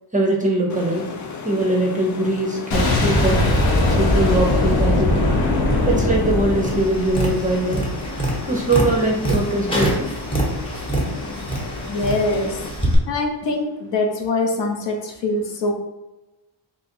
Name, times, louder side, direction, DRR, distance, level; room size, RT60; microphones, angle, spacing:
voice 1, 0.1-1.1 1.4-3.4 4.0-5.3 5.9-7.9 8.4-10.1 10.7-10.8, right 2 dB, 20° right, 0 dB, 0.5 m, -21 dB
sound 1, 0.7-12.7, left 4 dB, 40° left, 0.5 m, -35 dB
Boom, 2.7-7.6, left 1 dB, 85° left, 1.1 m, -19 dB
Tap, 6.6-12.9, right 1 dB, 10° left, 0.9 m, -26 dB
voice 2, 11.9-12.6 13.1-15.7, left 2 dB, 65° left, 2 dB, 0.9 m, -23 dB
3.7 x 2.9 x 4.4 m, 1.0 s
wide cardioid pair, 175°, 46 cm